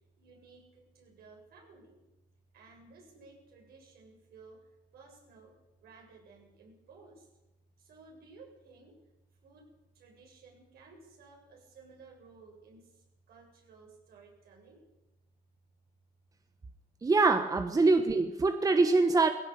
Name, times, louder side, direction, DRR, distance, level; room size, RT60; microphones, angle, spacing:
voice 1, 0.2-2.0 2.5-4.6 4.9-5.5 5.8-7.3 7.8-8.9 9.4-9.7 10.0-12.9 13.3-14.8, right 4 dB, 65° right, 1 dB, 7.8 m, -56 dB
voice 2, 17.0-19.3, right 3 dB, 20° right, 8 dB, 1.2 m, -24 dB
18.5 x 16.5 x 8.6 m, 1.0 s
cardioid pair, 110°, 17 cm